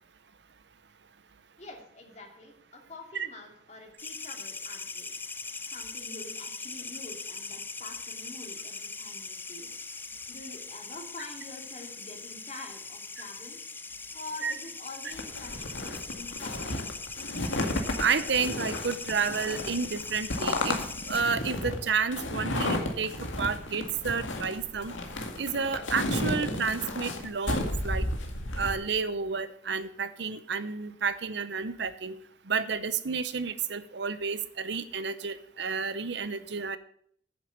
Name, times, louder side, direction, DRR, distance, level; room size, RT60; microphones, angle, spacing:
voice 1, 1.6-5.1 5.7-9.7 10.0-13.6 14.1-16.8, left 2 dB, 35° left, 2 dB, 2.5 m, -46 dB
sound 1, 4.0-21.2, left 4 dB, 10° left, 0.4 m, -40 dB
sound 2, 15.1-28.8, left 1 dB, 90° left, 2.0 m, -33 dB
voice 2, 18.0-20.8 21.1-24.9 25.4-28.1 28.6-32.2 32.5-36.8, right 5 dB, 65° right, 13 dB, 0.7 m, -31 dB
9.7 x 7.4 x 8.0 m, 0.62 s
head